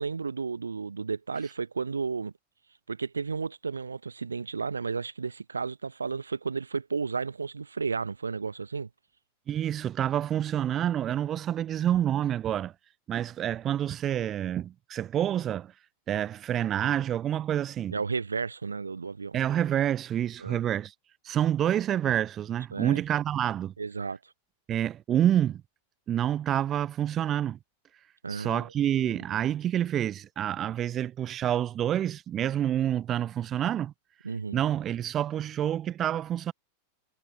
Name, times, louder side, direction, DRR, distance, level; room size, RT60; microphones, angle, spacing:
voice 1, 0.0-2.3 2.9-8.9 17.9-19.4 20.4-20.6 22.7-23.0 23.8-24.2 28.2-28.7 28.9-29.4 34.2-34.6, right 5 dB, 75° right, 0.9 m, -33 dB
voice 2, 9.5-12.7 13.1-15.7 16.1-17.9 19.3-20.9 21.2-23.7 24.7-25.6 26.1-27.6 28.3-33.9 34.5-36.5, right 11 dB, 30° right, 0.4 m, -28 dB
figure-of-eight pair, 90°, 0 cm